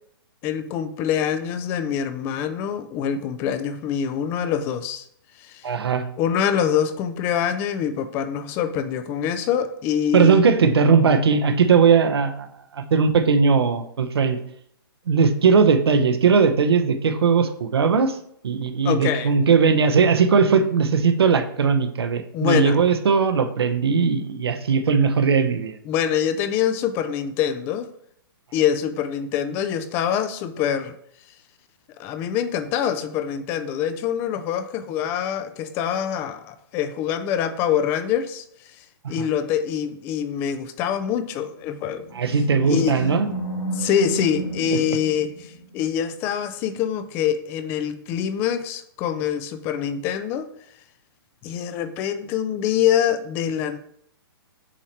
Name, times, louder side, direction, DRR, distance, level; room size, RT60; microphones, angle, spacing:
voice 1, 0.4-5.0 5.4-5.7 6.2-10.4 18.8-19.3 22.3-22.8 25.9-27.9 28.5-30.9 32.0-38.4 38.8-42.1 42.6-43.0 43.7-50.5 51.4-53.8, left 9 dB, 15° left, 0.3 m, -25 dB
voice 2, 5.6-6.1 10.1-12.5 12.7-14.4 15.1-18.2 18.4-25.8 42.1-43.3, right 5 dB, 75° right, 0.9 m, -19 dB
Animal, 41.5-46.0, right 2 dB, 80° left, 2.4 m, -32 dB
7.1 x 3.0 x 4.5 m
hypercardioid pair, 155°, 13 cm